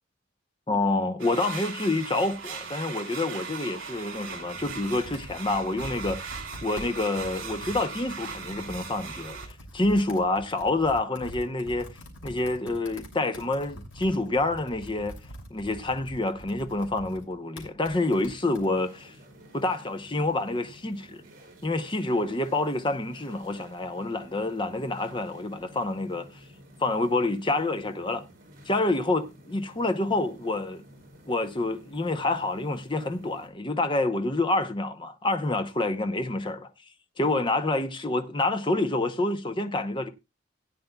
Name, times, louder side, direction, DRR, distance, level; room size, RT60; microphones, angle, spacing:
voice 1, 0.7-6.3 6.6-9.4 9.7-11.9 12.2-15.2 15.5-19.1 19.5-21.2 21.6-26.3 26.8-28.2 28.7-30.8 31.2-36.7 37.2-40.1, left 2 dB, 25° left, 0.8 m, -27 dB
sound 1, 1.2-9.5, right 5 dB, 70° right, 2.6 m, -39 dB
Computer keyboard, 4.2-18.7, equal, 75° left, 2.9 m, -45 dB
sound 2, 17.9-33.5, equal, 45° right, 4.5 m, -52 dB
17.0 x 9.4 x 2.3 m
head